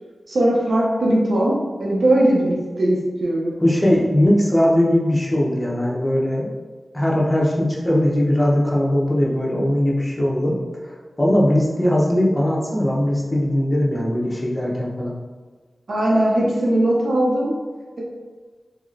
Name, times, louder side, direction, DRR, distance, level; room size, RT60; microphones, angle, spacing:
voice 1, 0.3-3.5 15.9-17.5, right 1 dB, 75° right, -4 dB, 0.6 m, -19 dB
voice 2, 3.6-6.6 6.9-10.6 10.8-15.1, left 1 dB, 20° left, -4 dB, 0.8 m, -19 dB
2.9 x 2.8 x 2.5 m, 1.4 s
wide cardioid pair, 55°, 0 cm